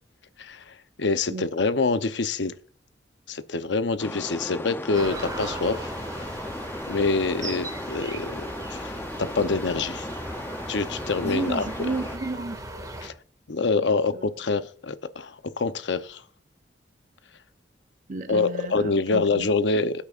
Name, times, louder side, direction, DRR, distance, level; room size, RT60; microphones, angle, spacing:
voice 1, 0.4-2.6 3.3-6.4 6.9-10.1 10.7-11.6 13.0-13.1 13.5-16.2 18.3-19.9, left 3 dB, 75° left, 0.8 m, -26 dB
waterfall roars and birds chirp, 4.0-12.2, left 1 dB, 10° left, 0.6 m, -36 dB
sound 1, 4.9-13.1, right 2 dB, 20° right, 2.0 m, -37 dB
sound 2, 11.2-12.2, left 1 dB, 40° left, 3.0 m, -46 dB
voice 2, 11.2-12.6 13.6-13.7 14.1-14.3 18.1-19.8, right 2 dB, 45° right, 0.7 m, -32 dB
21.0 x 8.7 x 2.5 m
head